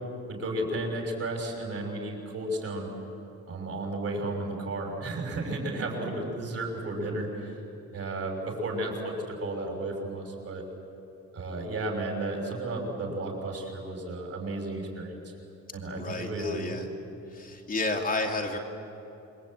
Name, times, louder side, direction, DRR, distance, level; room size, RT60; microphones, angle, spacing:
voice 1, 0.3-2.9 3.5-7.6 7.9-10.6 11.3-15.4 15.7-16.8, right 2 dB, 50° right, 1 dB, 6.4 m, -33 dB
voice 2, 15.9-16.9 17.3-18.6, left 2 dB, 30° left, 1 dB, 2.5 m, -31 dB
27.5 x 23.0 x 9.0 m, 2.9 s
cardioid pair, 160°, 30 cm